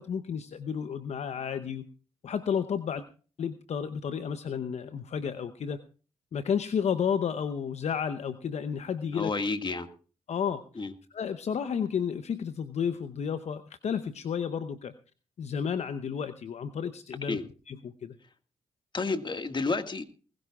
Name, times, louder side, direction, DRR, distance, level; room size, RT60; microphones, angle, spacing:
voice 1, 0.0-1.9 2.2-3.0 3.4-5.8 6.3-9.3 10.3-10.6 11.1-14.9 15.4-17.4 17.7-18.2, left 7 dB, 60° left, 11 dB, 0.8 m, -32 dB
voice 2, 9.0-9.9 10.8-10.9 17.2-17.4 18.9-20.0, left 3 dB, 40° left, 8 dB, 1.8 m, -30 dB
20.0 x 16.0 x 2.4 m, 0.38 s
supercardioid pair, 45°, 13 cm